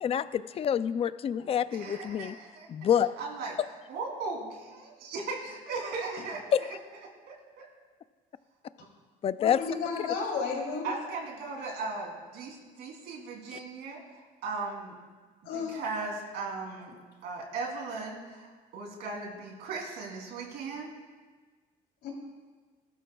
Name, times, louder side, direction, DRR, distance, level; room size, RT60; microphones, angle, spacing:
voice 1, 0.0-2.3 2.7-3.2 6.5-6.8 9.2-9.6 10.0-10.1 13.5-13.6, left 9 dB, 35° left, 0.4 m, -27 dB
voice 2, 1.8-2.7 3.2-3.5 3.9-6.4 7.3-7.6 10.8-14.9 15.5-16.9 17.2-20.9, right 3 dB, 80° right, 3.2 m, -37 dB
voice 3, 9.4-10.9 15.4-15.8 22.0-22.1, left 5 dB, 85° left, 3.4 m, -32 dB
21.0 x 12.5 x 2.4 m
cardioid pair, 110°, 17 cm